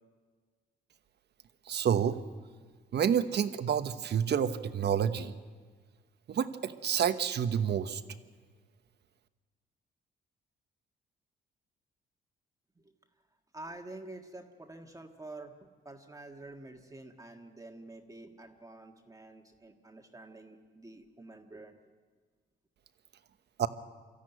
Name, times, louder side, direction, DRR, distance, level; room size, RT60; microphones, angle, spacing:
voice 1, 1.7-2.2 2.9-5.3 6.3-8.0 23.6-23.7, right 8 dB, 60° right, 11 dB, 1.1 m, -29 dB
voice 2, 13.5-15.5 15.8-21.8, right 2 dB, 15° right, 3 dB, 1.6 m, -48 dB
24.5 x 14.0 x 9.2 m, 1.5 s
cardioid pair, 90°, 20 cm